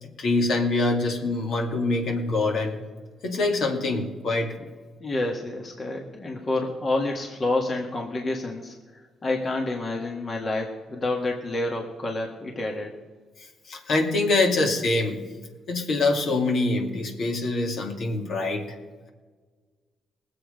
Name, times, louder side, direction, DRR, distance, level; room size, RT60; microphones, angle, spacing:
voice 1, 0.0-2.8 3.2-4.5 13.7-15.2 15.7-18.7, left 2 dB, 60° left, 2 dB, 2.3 m, -24 dB
voice 2, 5.0-12.9, left 2 dB, 35° left, 1 dB, 1.7 m, -29 dB
19.5 x 8.0 x 5.1 m, 1.4 s
cardioid pair, 100°, 0 cm